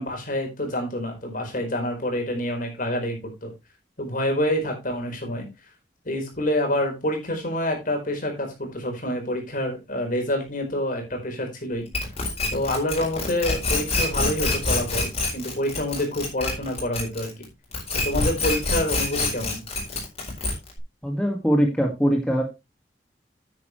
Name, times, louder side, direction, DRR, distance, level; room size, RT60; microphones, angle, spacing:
voice 1, 0.0-3.5 4.0-5.5 6.0-11.9 12.5-17.5 18.0-19.6, left 1 dB, 50° left, 3 dB, 4.4 m, -27 dB
sound 1, 11.9-17.4 17.7-20.8, left 3 dB, 35° left, 4.6 m, -26 dB
voice 2, 21.0-22.4, equal, 5° left, 1 dB, 1.7 m, -22 dB
9.6 x 9.5 x 3.1 m, 0.24 s
head